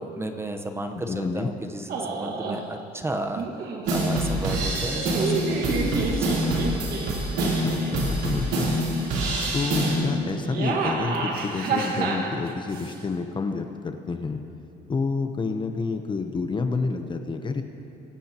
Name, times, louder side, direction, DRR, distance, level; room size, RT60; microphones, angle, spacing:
voice 1, 0.0-7.0, right 1 dB, 15° right, 5 dB, 0.9 m, -34 dB
voice 2, 0.9-1.5 7.6-8.8 9.5-14.4 14.9-17.6, left 4 dB, 30° left, 6 dB, 0.8 m, -29 dB
sound 1, 1.9-2.6 3.4-4.0 4.9-8.0 8.5-9.1 10.3-12.9, right 4 dB, 60° right, 1.8 m, -29 dB
sound 2, 3.9-10.0, right 1 dB, 90° right, 3.4 m, -26 dB
24.0 x 12.5 x 3.0 m, 2.9 s
cardioid pair, 110°, 17 cm